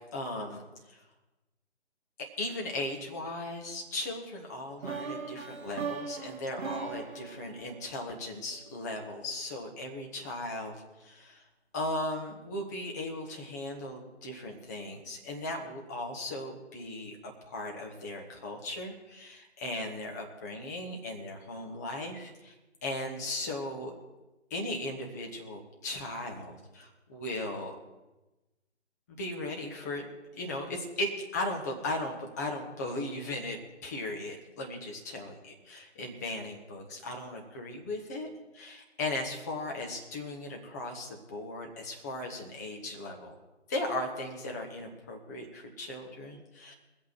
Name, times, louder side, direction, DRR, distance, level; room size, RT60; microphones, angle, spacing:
voice 1, 0.1-1.0 2.4-11.4 11.7-22.5 22.8-23.9 24.5-27.7 29.2-30.1 30.3-35.4 35.7-38.3 38.5-43.3 43.7-46.7, left 1 dB, 15° left, 0 dB, 1.1 m, -37 dB
sound 1, 4.8-8.8, right 5 dB, 20° right, 2.1 m, -39 dB
21.0 x 8.2 x 4.5 m, 1.1 s
figure-of-eight pair, 150°, 35 cm